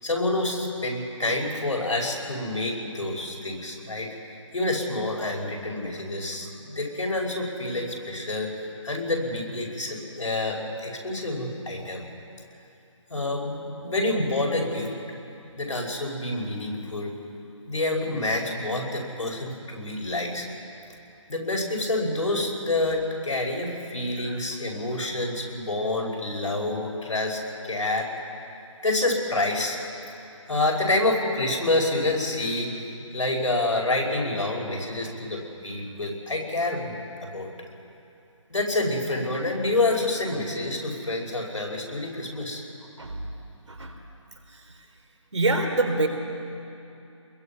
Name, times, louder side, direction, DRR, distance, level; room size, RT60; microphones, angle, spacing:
voice 1, 0.0-4.2 4.5-8.5 8.8-12.0 13.1-14.9 15.6-17.1 17.7-20.5 21.3-27.4 27.6-28.1 28.8-29.8 30.5-32.8 33.1-37.5 38.5-42.6, left 2 dB, 80° left, 0 dB, 5.4 m, -27 dB
voice 2, 45.3-46.1, right 2 dB, 70° right, 3 dB, 3.6 m, -25 dB
24.5 x 21.5 x 5.7 m, 2.7 s
figure-of-eight pair, 170°, 16 cm